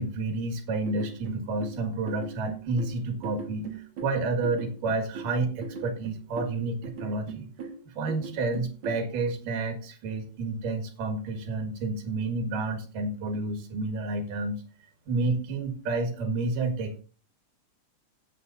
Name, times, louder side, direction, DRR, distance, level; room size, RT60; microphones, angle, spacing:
voice 1, 0.0-7.5 7.9-14.6 15.1-17.0, right 3 dB, 75° right, 6 dB, 3.3 m, -30 dB
sound 1, 0.8-9.1, right 6 dB, 50° right, 1.7 m, -40 dB
16.0 x 7.9 x 2.6 m, 0.37 s
omnidirectional pair, 3.8 m